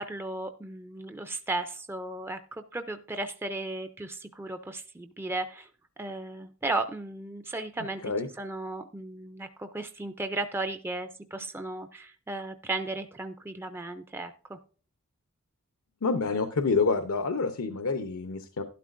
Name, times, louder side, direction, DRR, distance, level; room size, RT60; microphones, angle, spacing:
voice 1, 0.0-5.7 6.0-8.1 8.4-14.6, right 2 dB, 10° right, 8 dB, 0.4 m, -35 dB
voice 2, 16.0-18.6, left 4 dB, 90° left, 8 dB, 0.7 m, -27 dB
12.0 x 11.5 x 2.5 m, 0.42 s
head